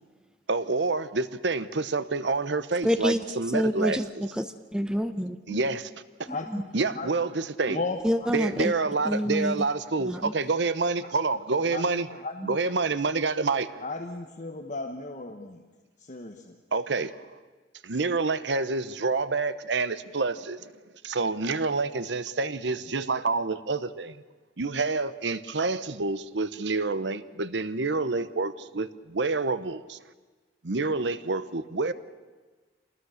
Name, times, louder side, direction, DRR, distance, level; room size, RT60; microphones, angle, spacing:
voice 1, 0.5-4.0 5.2-5.9 6.7-7.8 8.3-12.1 12.4-13.8 16.7-17.3 17.8-20.7 21.0-24.2 24.6-30.0 30.6-31.9, right 3 dB, 70° right, 14 dB, 0.9 m, -28 dB
voice 2, 2.8-3.2 3.5-5.6 6.3-6.6 8.0-8.7 9.0-9.7 10.0-10.3, equal, 5° right, 9 dB, 0.7 m, -28 dB
voice 3, 6.3-6.6 6.9-7.1 7.7-8.3 11.7-12.6 13.8-15.6 16.0-16.6, left 3 dB, 45° left, 3 dB, 1.2 m, -35 dB
26.0 x 20.0 x 6.5 m, 1.3 s
head